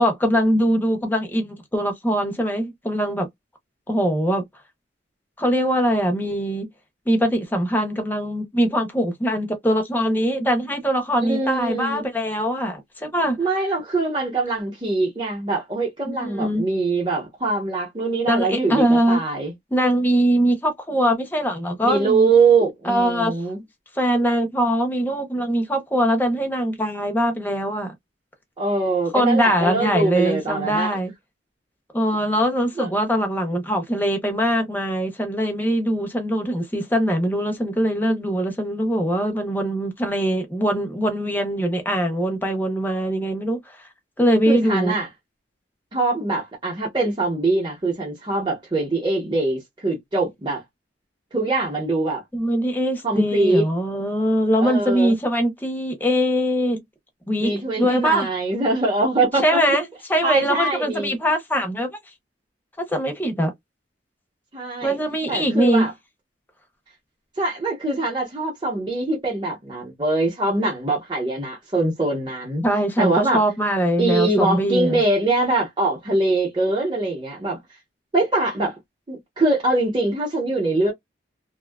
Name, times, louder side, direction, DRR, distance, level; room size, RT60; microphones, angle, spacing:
voice 1, 0.0-3.3 3.9-4.4 5.4-6.7 7.1-13.4 16.1-16.6 18.2-19.2 19.7-22.3 22.8-23.3 24.0-27.9 29.1-31.1 31.9-43.9 44.2-45.0 52.3-56.8 57.3-58.3 59.4-61.9 62.8-63.5 64.8-65.9 72.6-75.0, equal, 10° left, 0.7 m, -22 dB
voice 2, 11.2-12.0 13.4-19.5 21.8-23.6 28.6-30.9 32.8-32.9 44.5-45.1 45.9-50.6 51.3-52.2 53.0-53.6 54.6-55.2 57.4-59.6 60.2-61.2 64.5-65.0 65.3-65.9 67.4-72.6 73.0-73.4 74.0-77.6 78.1-78.8 79.1-80.9, right 2 dB, 25° right, 1.0 m, -23 dB
2.6 x 2.3 x 2.3 m
head